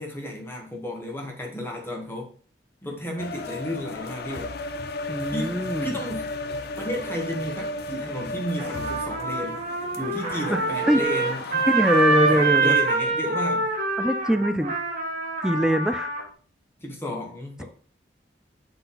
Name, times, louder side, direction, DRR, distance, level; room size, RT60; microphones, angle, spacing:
voice 1, 0.0-2.3 2.8-4.5 5.3-6.3 6.8-11.7 12.2-13.7 16.8-17.6, equal, 15° left, 0 dB, 1.1 m, -33 dB
sound 1, 3.2-13.1, left 2 dB, 60° left, 0.6 m, -35 dB
voice 2, 5.1-5.9 10.5-10.6 10.9-11.0 11.7-12.8 14.0-14.8 15.4-16.1, equal, 5° right, 10 dB, 0.4 m, -23 dB
Trumpet, 8.6-16.2, right 3 dB, 45° right, 1.5 m, -25 dB
7.7 x 3.9 x 4.1 m, 0.43 s
head